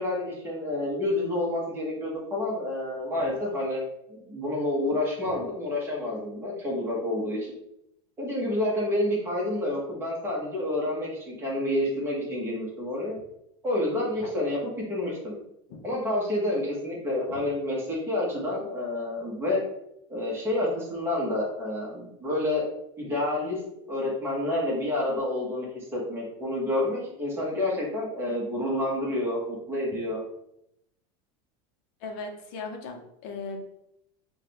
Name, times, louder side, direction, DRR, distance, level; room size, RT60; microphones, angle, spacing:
voice 1, 0.0-7.5 8.2-13.2 13.6-15.3 15.8-19.6 20.1-22.6 23.0-23.6 23.9-30.2, left 1 dB, 15° right, -4 dB, 0.9 m, -29 dB
voice 2, 32.0-33.6, left 4 dB, 45° left, 3 dB, 0.7 m, -38 dB
4.7 x 2.2 x 2.8 m, 0.78 s
supercardioid pair, 170°, 17 cm